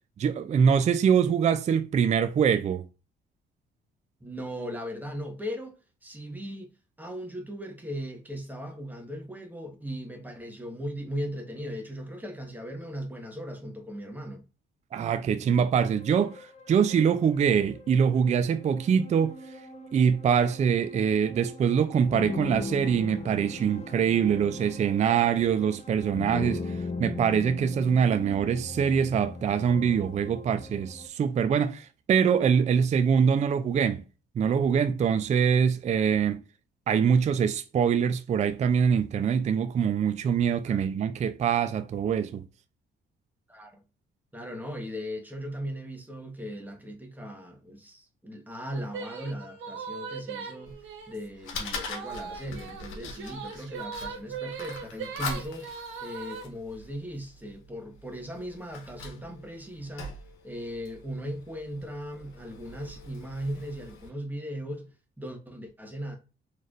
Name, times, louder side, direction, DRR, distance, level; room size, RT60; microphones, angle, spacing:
voice 1, 0.2-2.8 14.9-19.4 19.9-26.7 27.0-34.0 34.4-36.4 36.9-42.5, right 7 dB, 35° right, 0.4 m, -24 dB
voice 2, 4.2-5.8 6.0-6.7 7.0-14.4 40.7-40.9 43.5-43.8 44.3-50.8 51.1-55.7 56.0-60.1 60.4-64.9 65.2-66.2, equal, 10° right, 1.1 m, -38 dB
sound 1, 15.8-31.1, left 3 dB, 35° left, 0.7 m, -40 dB
sound 2, 48.7-51.2 51.9-56.4, right 5 dB, 80° right, 1.0 m, -39 dB
Fire, 50.6-64.1, left 3 dB, 85° left, 1.1 m, -43 dB
4.1 x 3.2 x 2.5 m
cardioid pair, 90°, 20 cm